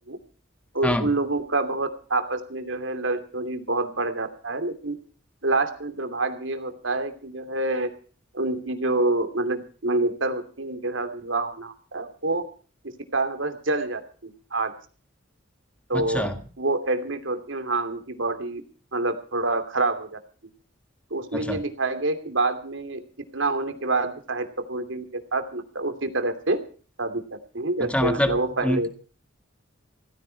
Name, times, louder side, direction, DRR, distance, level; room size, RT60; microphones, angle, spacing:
voice 1, 0.7-5.0 5.4-7.9 8.3-12.4 13.1-14.7 15.9-16.3 16.6-18.6 18.9-20.2 21.1-23.0 23.3-25.0 25.3-26.6 27.0-27.2 27.5-28.9, right 2 dB, 80° right, 8 dB, 2.9 m, -27 dB
voice 2, 15.9-16.4 21.3-21.6 27.9-28.9, equal, 5° left, 8 dB, 1.7 m, -26 dB
17.0 x 15.5 x 4.7 m, 0.40 s
head